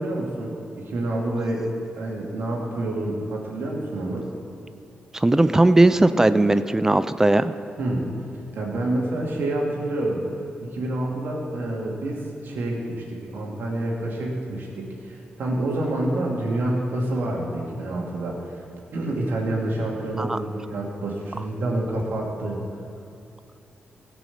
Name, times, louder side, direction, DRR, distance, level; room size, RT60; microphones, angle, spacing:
voice 1, 0.0-1.7 2.0-4.2 7.8-8.1 8.5-10.2 10.6-18.6 18.9-22.6, right 1 dB, 80° right, -2 dB, 2.6 m, -28 dB
voice 2, 5.1-7.5 20.2-20.4, right 2 dB, 15° right, 12 dB, 0.4 m, -18 dB
16.5 x 6.1 x 7.2 m, 2.5 s
cardioid pair, 80°, 4 cm